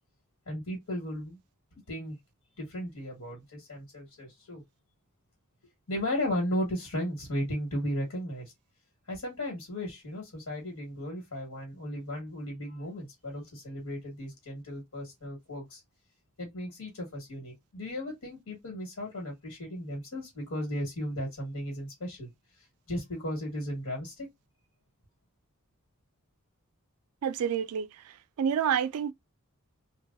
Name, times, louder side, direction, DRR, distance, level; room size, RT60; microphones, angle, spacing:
voice 1, 0.5-1.4 1.9-2.2 2.6-4.6 5.9-8.5 9.1-15.8 16.4-22.3 22.9-24.3, equal, 75° left, 1.8 m, -35 dB
voice 2, 27.2-29.1, right 8 dB, 75° right, 0.3 m, -29 dB
3.1 x 2.5 x 2.5 m
head